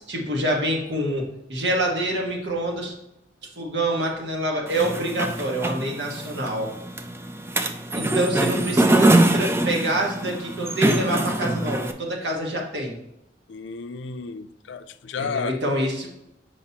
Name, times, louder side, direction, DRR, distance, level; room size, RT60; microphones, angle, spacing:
voice 1, 0.0-2.9 3.6-6.7 7.9-13.0 15.2-16.1, right 1 dB, 70° right, 1.4 m, -26 dB
sound 1, 4.7-11.9, right 1 dB, 15° right, 0.4 m, -23 dB
voice 2, 13.5-15.6, left 5 dB, 85° left, 0.4 m, -32 dB
7.2 x 5.0 x 2.9 m
head